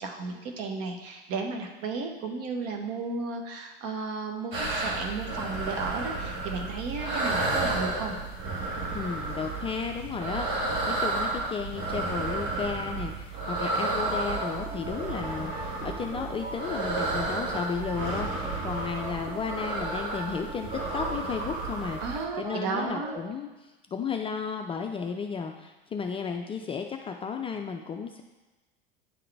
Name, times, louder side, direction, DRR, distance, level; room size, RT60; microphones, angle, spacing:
voice 1, 0.0-8.2 22.0-23.1, right 4 dB, 50° right, 3 dB, 1.1 m, -34 dB
sound 1, 4.5-22.2, right 2 dB, 70° right, 1.8 m, -32 dB
voice 2, 8.9-22.0 22.4-23.5 23.9-28.2, left 6 dB, 20° left, 4 dB, 0.4 m, -33 dB
sound 2, 14.1-23.3, right 2 dB, 20° right, 0.7 m, -41 dB
9.4 x 3.8 x 3.4 m, 1.1 s
hypercardioid pair, 85°, 29 cm